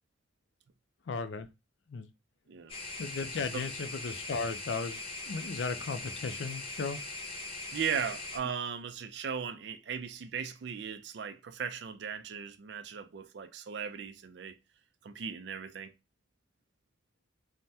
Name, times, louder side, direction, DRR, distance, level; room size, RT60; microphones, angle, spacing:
voice 1, 1.1-1.5 1.9-2.1 3.0-7.0, left 4 dB, 70° left, 0.4 m, -36 dB
sound 1, 2.7-8.4, left 2 dB, 30° left, 0.7 m, -41 dB
voice 2, 7.7-14.6 15.0-15.9, right 7 dB, 60° right, 0.4 m, -37 dB
3.3 x 2.1 x 2.7 m
head